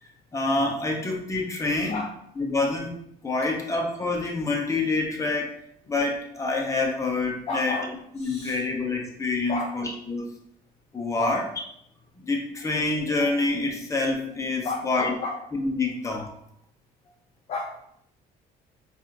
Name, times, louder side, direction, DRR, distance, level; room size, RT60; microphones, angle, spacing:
voice 1, 0.3-2.0 2.4-2.9 3.2-5.6 5.9-7.7 8.2-10.2 10.9-11.4 12.2-15.1 15.6-16.3, left 3 dB, 20° left, 0 dB, 0.8 m, -27 dB
voice 2, 7.5-8.7 9.5-9.8 11.2-11.5 12.6-12.7 14.6-15.5 17.1-17.2 17.5-17.8, left 3 dB, 40° left, 1 dB, 0.4 m, -32 dB
4.1 x 2.5 x 2.7 m, 0.72 s
cardioid pair, 110°, 17 cm